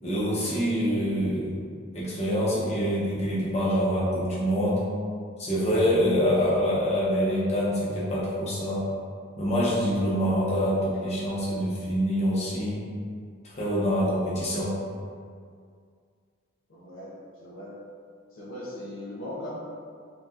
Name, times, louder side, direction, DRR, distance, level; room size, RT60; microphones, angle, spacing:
voice 1, 0.0-1.6 1.9-4.8 5.4-8.9 9.4-12.8 13.6-14.7, equal, 30° left, -9 dB, 0.8 m, -25 dB
voice 2, 16.7-17.8 18.3-19.5, left 1 dB, 70° left, -6 dB, 0.6 m, -39 dB
2.7 x 2.3 x 3.5 m, 2.1 s
head